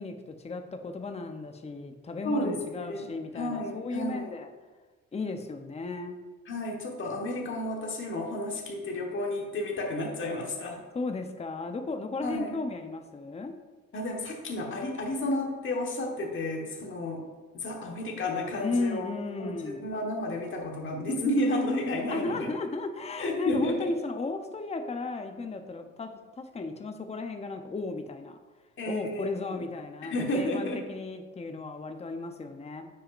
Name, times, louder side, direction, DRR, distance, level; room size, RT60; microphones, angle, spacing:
voice 1, 0.0-4.5 5.1-6.3 10.9-13.5 18.6-19.8 22.1-26.1 26.4-28.4 28.9-32.9, left 3 dB, 20° left, 6 dB, 0.7 m, -35 dB
voice 2, 2.2-3.1 3.3-4.3 6.5-10.8 12.2-12.5 13.9-17.2 17.5-19.1 19.4-22.5 23.2-23.9 28.8-29.6 30.1-30.8, left 1 dB, 40° left, 0 dB, 1.4 m, -31 dB
9.6 x 6.0 x 2.5 m, 1.3 s
cardioid pair, 90°, 30 cm